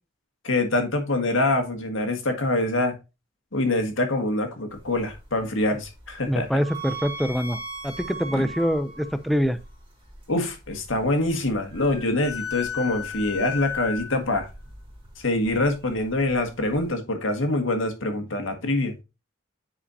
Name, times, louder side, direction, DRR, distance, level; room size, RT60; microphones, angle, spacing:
voice 1, 0.4-3.0 3.5-6.5 8.3-8.5 10.3-14.5 15.2-18.9, left 2 dB, 75° left, 1.8 m, -25 dB
sound 1, 4.7-16.9, left 3 dB, 25° right, 3.0 m, -38 dB
voice 2, 6.2-9.6, equal, ahead, 0.4 m, -25 dB
10.0 x 4.9 x 2.7 m
head